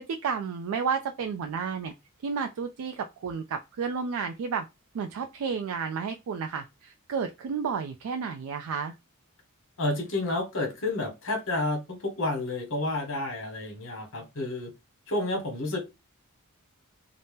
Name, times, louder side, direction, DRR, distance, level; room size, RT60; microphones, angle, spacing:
voice 1, 0.0-1.9 2.2-4.6 4.9-8.9, right 6 dB, 65° right, 0.3 m, -31 dB
voice 2, 9.8-14.7 15.1-15.8, left 2 dB, 60° left, 1.1 m, -30 dB
2.7 x 2.0 x 3.5 m
head